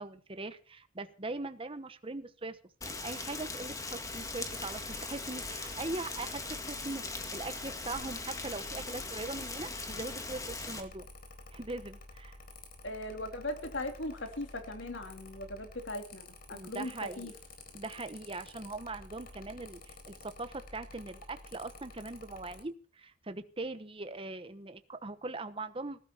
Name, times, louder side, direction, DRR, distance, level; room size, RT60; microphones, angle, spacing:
voice 1, 0.0-2.6 2.8-11.1 11.5-12.4 16.5-17.3 17.7-26.0, right 2 dB, 30° right, 10 dB, 1.1 m, -41 dB
Rain, 2.8-10.8, left 3 dB, 15° left, 2.0 m, -40 dB
Mechanical fan, 4.1-22.6, left 2 dB, 50° left, 4.1 m, -51 dB
voice 2, 12.8-17.3, left 1 dB, 70° left, 6 dB, 3.0 m, -39 dB
19.5 x 12.5 x 4.4 m, 0.37 s
head